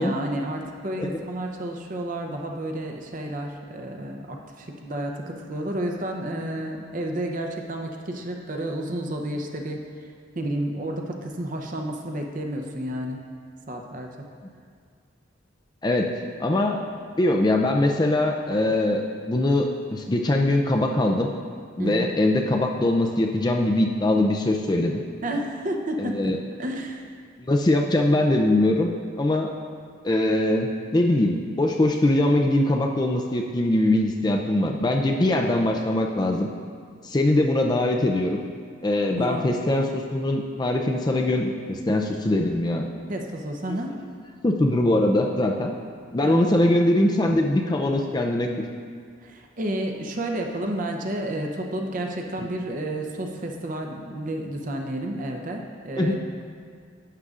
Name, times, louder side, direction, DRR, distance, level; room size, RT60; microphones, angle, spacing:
voice 1, 0.0-9.8 10.3-13.2 13.7-14.3 21.8-22.1 25.2-26.2 26.6-27.1 39.2-39.4 43.1-43.9 46.2-46.5 49.2-56.2, right 1 dB, 40° right, 2 dB, 0.7 m, -31 dB
voice 2, 16.4-16.8 17.2-19.0 19.3-21.3 21.8-25.0 26.0-26.4 27.4-29.5 30.0-36.5 37.0-38.4 38.8-42.9 44.4-45.7 46.1-48.5 52.4-52.5 56.0-56.2, left 1 dB, 20° left, 2 dB, 0.4 m, -22 dB
11.5 x 8.0 x 2.4 m, 2.1 s
head